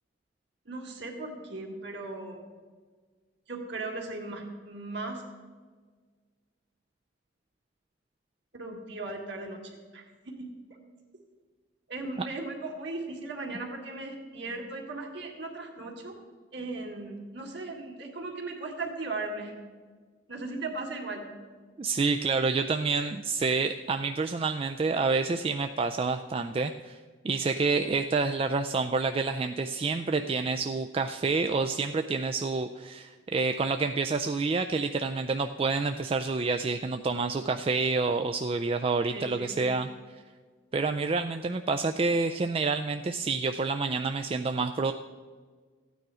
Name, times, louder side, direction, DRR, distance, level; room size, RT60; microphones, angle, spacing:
voice 1, 0.7-2.4 3.5-5.2 8.5-10.5 11.9-16.2 16.5-19.5 20.3-21.3 39.1-39.6, right 2 dB, 60° right, 1 dB, 2.2 m, -37 dB
voice 2, 21.8-27.0 27.2-40.2 40.7-44.9, right 4 dB, 30° right, 6 dB, 0.3 m, -28 dB
14.0 x 9.3 x 4.9 m, 1.5 s
head